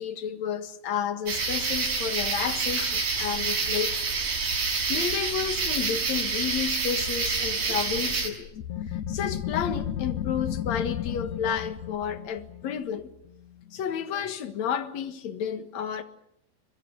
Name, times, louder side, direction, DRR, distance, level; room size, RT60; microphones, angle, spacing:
voice 1, 0.0-4.1 4.6-8.5 8.9-13.1 13.7-16.0, left 8 dB, 55° left, 2.4 m, -31 dB
sound 1, 1.3-8.3, right 4 dB, 60° right, 7.6 m, -28 dB
sound 2, 8.5-13.8, left 10 dB, 75° left, 1.7 m, -33 dB
24.0 x 23.0 x 8.1 m
omnidirectional pair, 4.7 m